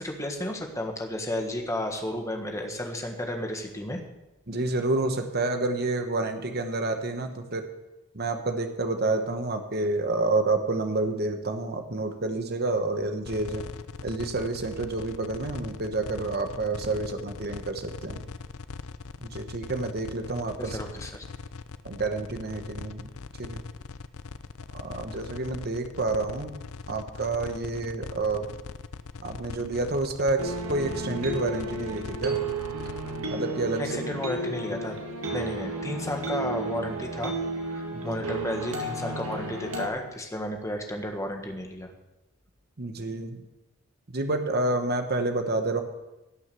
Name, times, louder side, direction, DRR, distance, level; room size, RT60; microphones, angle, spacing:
voice 1, 0.0-4.0 20.6-21.2 33.8-34.9 35.3-37.3 37.7-41.9, left 1 dB, 15° left, 3 dB, 1.4 m, -33 dB
voice 2, 4.5-7.7 8.1-13.7 14.0-18.3 19.2-20.8 21.8-23.1 23.4-23.6 24.7-26.5 26.9-28.5 29.2-32.4 33.3-33.9 37.9-38.2 42.8-43.4 44.1-45.8, right 2 dB, 45° right, 6 dB, 1.2 m, -29 dB
sound 1, 13.3-33.3, left 4 dB, 75° left, 0.6 m, -40 dB
sound 2, 30.4-39.9, right 2 dB, 80° right, 1.8 m, -33 dB
17.0 x 6.5 x 6.9 m, 0.99 s
head